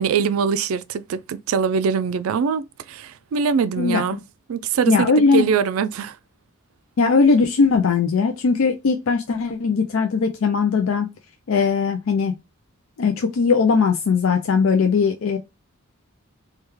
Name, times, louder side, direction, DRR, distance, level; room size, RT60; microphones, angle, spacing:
voice 1, 0.0-4.2 4.5-6.2, right 6 dB, 75° right, 0.3 m, -23 dB
voice 2, 3.8-4.2 4.9-5.5 7.0-11.1 11.5-12.3 13.0-15.4, left 5 dB, 70° left, 0.4 m, -19 dB
3.4 x 2.3 x 3.1 m
head